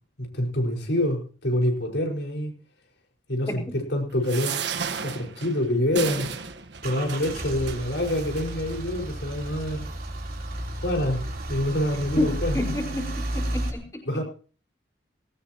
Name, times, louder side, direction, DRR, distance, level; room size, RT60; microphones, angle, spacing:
voice 1, 0.2-2.5 3.3-4.6 5.0-6.3 6.8-9.9 10.8-11.2 11.5-12.6 14.1-14.2, left 1 dB, 75° left, 1 dB, 5.4 m, -26 dB
sound 1, 4.2-8.8 9.4-9.6 9.8-9.9, right 6 dB, 70° right, 1.4 m, -34 dB
Car / Engine starting / Idling, 5.9-13.7, right 1 dB, 55° right, 3.8 m, -33 dB
voice 2, 12.2-14.0, left 1 dB, 15° left, 0 dB, 4.6 m, -29 dB
20.0 x 18.0 x 3.1 m, 0.40 s
head